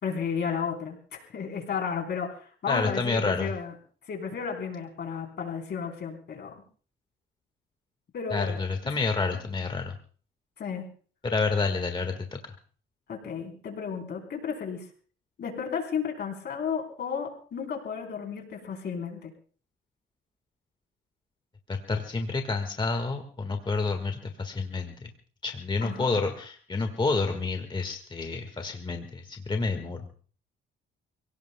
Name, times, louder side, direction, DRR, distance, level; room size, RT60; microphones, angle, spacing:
voice 1, 0.0-3.7 4.1-6.5 8.1-8.6 8.8-9.0 10.6-10.9 13.1-14.9 15.4-19.3 25.8-26.1, left 6 dB, 60° left, 2 dB, 3.8 m, -33 dB
voice 2, 2.7-3.5 8.3-10.0 11.2-12.4 21.7-25.1 25.4-30.1, left 3 dB, 25° left, 5 dB, 1.6 m, -29 dB
29.5 x 17.5 x 2.2 m, 0.43 s
cardioid pair, 90°, 20 cm